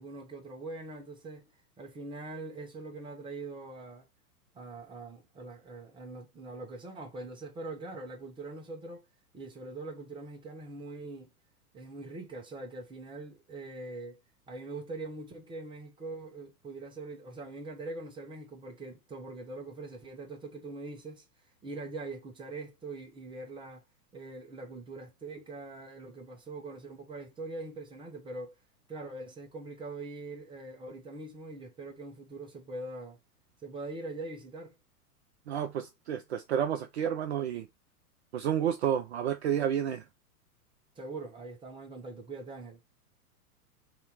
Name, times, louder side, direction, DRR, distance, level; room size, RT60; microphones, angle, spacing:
voice 1, 0.0-1.4 1.8-4.0 4.5-9.0 9.3-11.3 11.7-14.2 14.5-21.2 21.6-23.8 24.1-28.5 28.9-33.2 33.6-34.8 41.0-42.8, right 2 dB, 10° right, 1.0 m, -42 dB
voice 2, 35.5-37.7 38.3-40.0, right 9 dB, 45° right, 0.5 m, -30 dB
3.9 x 2.8 x 4.6 m
figure-of-eight pair, 100°, 46 cm